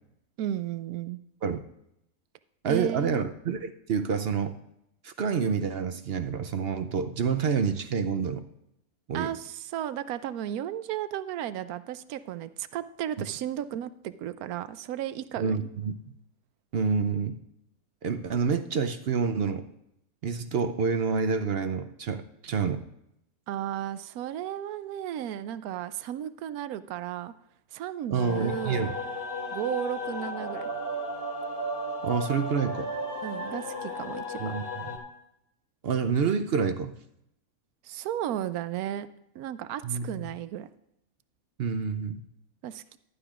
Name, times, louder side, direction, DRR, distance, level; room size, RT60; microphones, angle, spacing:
voice 1, 0.4-1.2 2.7-3.3 9.1-15.7 23.5-27.3 27.7-28.9 29.5-30.7 33.2-34.6 37.8-39.1 39.3-40.7 42.6-43.0, right 11 dB, 85° right, 13 dB, 1.1 m, -34 dB
voice 2, 2.6-4.5 5.0-8.4 9.1-9.3 15.4-15.9 16.7-17.4 18.0-19.6 20.2-22.8 28.1-29.0 32.0-32.9 34.4-34.9 35.8-36.9 39.8-40.1 41.6-42.2, right 5 dB, 60° right, 9 dB, 0.7 m, -28 dB
sound 1, 28.1-35.0, equal, 60° left, 2.6 m, -34 dB
15.0 x 11.5 x 2.4 m, 0.79 s
omnidirectional pair, 1.5 m